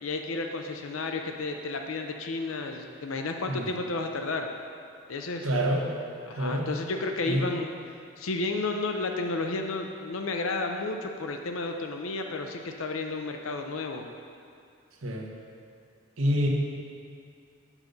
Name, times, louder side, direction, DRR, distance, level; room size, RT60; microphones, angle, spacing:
voice 1, 0.0-4.5 5.1-5.5 6.3-7.7 8.2-14.1, left 3 dB, 75° left, 4 dB, 0.6 m, -32 dB
voice 2, 5.4-5.8 6.4-6.7 7.3-7.4 15.0-15.3 16.2-16.5, equal, 80° right, -1 dB, 1.1 m, -26 dB
7.3 x 5.2 x 6.6 m, 2.4 s
head